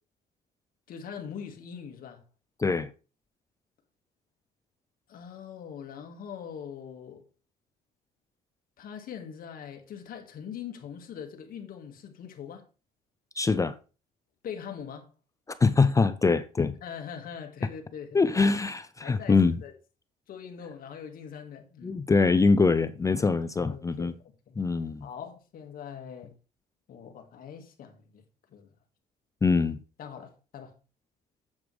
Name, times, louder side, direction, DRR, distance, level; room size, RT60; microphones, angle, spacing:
voice 1, 0.9-2.2 5.1-7.2 8.8-12.6 14.4-15.1 16.8-18.3 19.0-19.7 20.3-22.0 23.7-24.6 25.0-26.3 26.9-28.2 28.5-28.7 30.0-30.7, left 7 dB, 60° left, 1.9 m, -42 dB
voice 2, 2.6-2.9 13.4-13.8 15.6-16.8 18.1-19.6 21.8-24.1 24.6-25.1 29.4-29.8, left 4 dB, 20° left, 0.4 m, -23 dB
8.5 x 7.7 x 3.3 m
cardioid pair, 110°, 17 cm